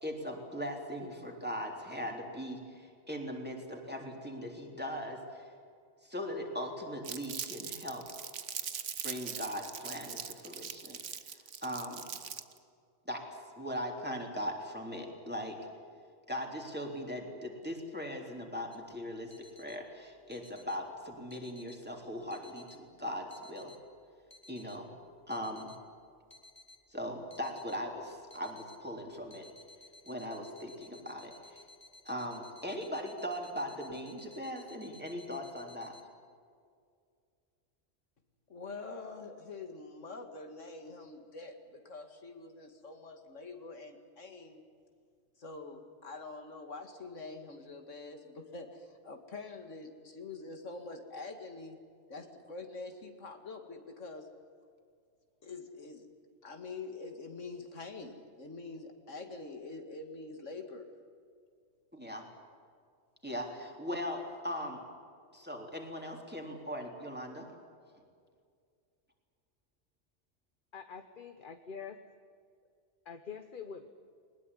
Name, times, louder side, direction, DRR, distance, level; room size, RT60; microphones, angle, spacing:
voice 1, 0.0-5.5 6.0-8.1 9.0-11.0 11.3-12.1 13.1-13.2 13.6-15.6 16.3-23.7 24.5-24.9 25.3-25.7 26.9-29.5 30.1-31.6 32.1-36.0 61.9-62.2 63.2-64.8 65.3-67.5, equal, 10° right, 1 dB, 3.6 m, -39 dB
Crumpling crinkling, 7.0-12.6, right 7 dB, 80° right, 1.4 m, -41 dB
sound 1, 18.7-36.0, left 2 dB, 20° left, 2.1 m, -58 dB
voice 2, 38.5-44.6 45.4-51.8 52.1-54.3 55.4-56.1 56.4-60.9, left 3 dB, 85° left, 5 dB, 2.5 m, -45 dB
voice 3, 70.7-72.0 73.0-73.9, left 6 dB, 45° left, 8 dB, 1.2 m, -45 dB
21.5 x 20.0 x 9.9 m, 2.2 s
omnidirectional pair, 1.2 m